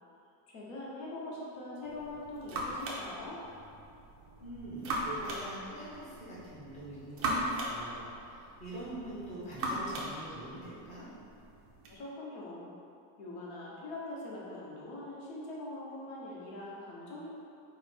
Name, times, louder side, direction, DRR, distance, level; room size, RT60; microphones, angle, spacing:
voice 1, 0.5-3.4 11.9-12.7 13.2-17.3, left 2 dB, 65° left, -5 dB, 1.2 m, -43 dB
sound 1, 1.8-12.0, right 1 dB, 30° right, 0.4 m, -39 dB
voice 2, 4.4-11.0, right 1 dB, 15° left, -10 dB, 0.7 m, -44 dB
4.7 x 2.1 x 4.4 m, 2.6 s
cardioid pair, 170°, 49 cm